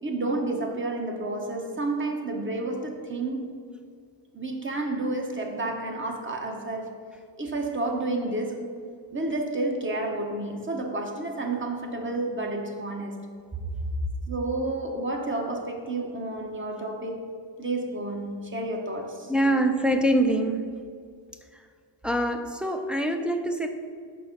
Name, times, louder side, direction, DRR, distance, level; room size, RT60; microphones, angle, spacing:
voice 1, 0.0-3.5 4.3-6.9 7.4-8.7 9.1-13.3 14.3-17.3 17.6-19.3, right 2 dB, 25° right, 3 dB, 1.1 m, -30 dB
voice 2, 19.3-20.7 22.0-23.7, right 1 dB, ahead, 4 dB, 0.5 m, -24 dB
6.0 x 4.2 x 5.9 m, 2.1 s
cardioid pair, 80°, 48 cm